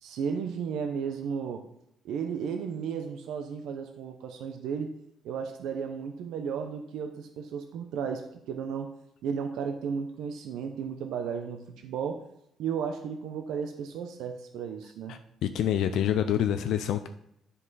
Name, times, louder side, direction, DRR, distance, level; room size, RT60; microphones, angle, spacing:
voice 1, 0.0-1.7 2.0-4.9 5.2-9.0 9.2-12.3 12.6-15.1, right 6 dB, 90° right, 5 dB, 0.7 m, -34 dB
voice 2, 15.1-17.1, left 10 dB, 70° left, 8 dB, 0.4 m, -27 dB
9.9 x 5.5 x 4.0 m, 0.77 s
cardioid pair, 165°, 0 cm